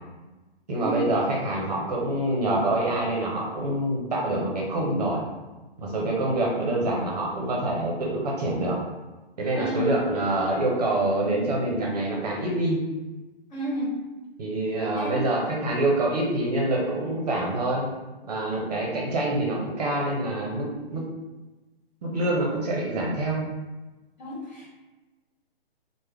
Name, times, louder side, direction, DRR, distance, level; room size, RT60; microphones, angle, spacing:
voice 1, 0.7-5.2 5.8-8.8 9.4-12.8 14.4-17.9 18.3-21.0 22.0-23.4, right 2 dB, 40° right, -2 dB, 0.6 m, -26 dB
voice 2, 9.5-10.0 13.5-13.9 15.0-15.2 24.2-24.7, equal, 45° left, -6 dB, 1.4 m, -31 dB
3.3 x 2.1 x 3.3 m, 1.1 s
hypercardioid pair, 165°, 31 cm